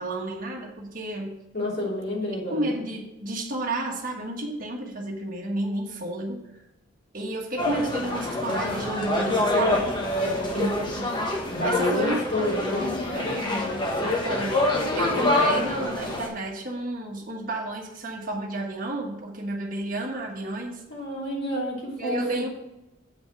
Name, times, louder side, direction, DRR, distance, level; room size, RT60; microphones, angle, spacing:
voice 1, 0.0-1.4 2.5-6.4 7.1-9.9 10.5-11.2 11.6-12.5 12.8-13.9 14.1-20.8 22.0-22.5, right 1 dB, 40° right, 0 dB, 1.4 m, -32 dB
voice 2, 1.5-2.7 10.2-10.6 11.5-13.0 20.9-22.4, left 1 dB, 55° left, -5 dB, 2.9 m, -29 dB
sound 1, 7.6-16.3, left 1 dB, 20° left, 1.2 m, -26 dB
8.0 x 5.2 x 6.0 m, 0.96 s
head